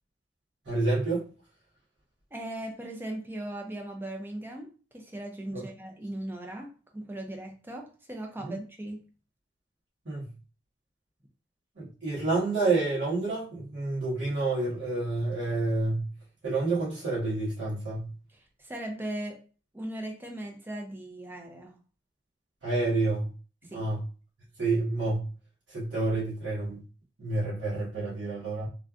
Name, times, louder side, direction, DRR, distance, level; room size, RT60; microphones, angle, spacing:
voice 1, 0.6-1.2 5.5-5.6 8.4-8.5 10.0-10.3 11.8-16.1 16.4-18.1 22.6-23.3 23.7-24.0 24.6-25.2 25.7-26.8 27.2-28.7, right 2 dB, 70° right, 1.4 m, -29 dB
voice 2, 2.3-4.7 4.9-9.0 18.3-19.4 19.7-21.7 23.6-23.9, right 1 dB, 10° right, 0.5 m, -38 dB
3.3 x 2.6 x 2.4 m
head